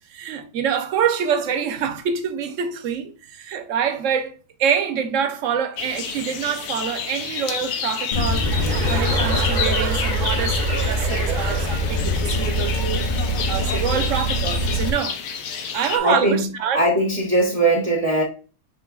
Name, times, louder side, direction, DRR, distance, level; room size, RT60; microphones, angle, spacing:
voice 1, 0.1-13.1 13.5-15.2 15.7-16.8, right 7 dB, 65° right, 0.9 m, -26 dB
sound 1, 5.8-16.0, left 7 dB, 85° left, 1.2 m, -30 dB
Male speech man speaking / Car / Idling, 8.1-14.9, left 1 dB, 65° left, 0.4 m, -23 dB
Chuckle chortle, 8.4-12.2, right 8 dB, 80° right, 1.2 m, -29 dB
voice 2, 15.7-16.4 16.7-18.2, right 1 dB, 35° right, 0.6 m, -20 dB
6.0 x 3.7 x 2.3 m
omnidirectional pair, 1.6 m